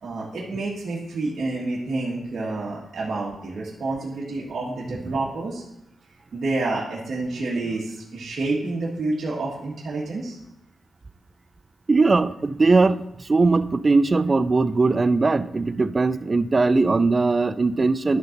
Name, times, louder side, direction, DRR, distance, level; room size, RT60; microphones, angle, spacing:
voice 1, 0.0-5.6 6.3-10.4, right 2 dB, 65° right, 1.7 m, -28 dB
voice 2, 11.9-18.2, right 3 dB, 35° right, 0.4 m, -20 dB
11.5 x 3.9 x 5.9 m
cardioid pair, 95°, 0 cm